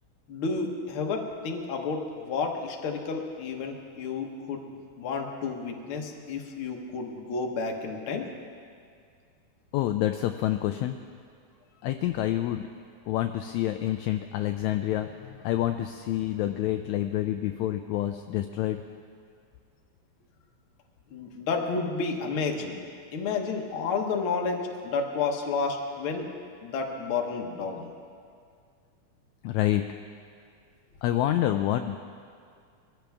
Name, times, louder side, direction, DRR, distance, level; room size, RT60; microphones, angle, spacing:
voice 1, 0.3-4.7 5.0-8.3 21.1-22.8 23.1-26.3 26.6-27.9, left 4 dB, 55° left, 2 dB, 1.7 m, -31 dB
voice 2, 9.7-11.0 11.8-12.7 13.1-18.8 29.4-29.8 31.0-32.0, left 13 dB, 80° left, 7 dB, 1.7 m, -27 dB
22.5 x 15.0 x 3.5 m, 2.2 s
omnidirectional pair, 3.7 m